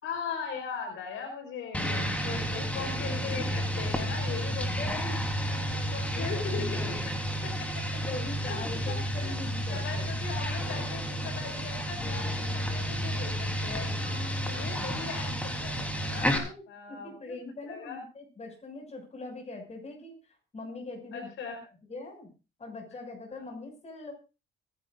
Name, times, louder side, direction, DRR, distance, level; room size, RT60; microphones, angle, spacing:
voice 1, 0.0-2.1 2.5-5.2 5.7-7.1 7.4-8.0 8.3-8.6 8.9-9.3 9.7-13.9 14.5-17.3 17.7-18.0 21.1-21.6 23.3-23.4, left 6 dB, 80° left, 3 dB, 4.7 m, -39 dB
sound 1, 1.7-16.4, equal, 5° left, 3.7 m, -31 dB
voice 2, 2.2-2.7 4.8-7.3 8.0-10.0 10.6-11.4 14.0-15.0 16.2-20.2 20.5-21.3 21.9-22.3 22.6-24.1, left 2 dB, 35° left, 2 dB, 6.5 m, -42 dB
25.0 x 11.5 x 2.6 m, 0.31 s
cardioid pair, 90°, 20 cm